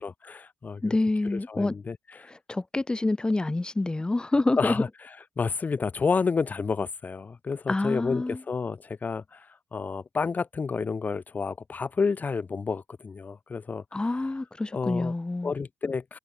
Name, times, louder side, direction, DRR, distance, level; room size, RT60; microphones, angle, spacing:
voice 1, 0.0-1.0 1.3-2.3 4.6-14.4 14.7-15.1 15.4-16.2, left 5 dB, 40° left, 2.9 m, -30 dB
voice 2, 0.8-1.7 2.3-4.8 7.7-8.4 13.9-15.5, left 2 dB, 20° left, 4.4 m, -27 dB
supercardioid pair, 55°, 4 cm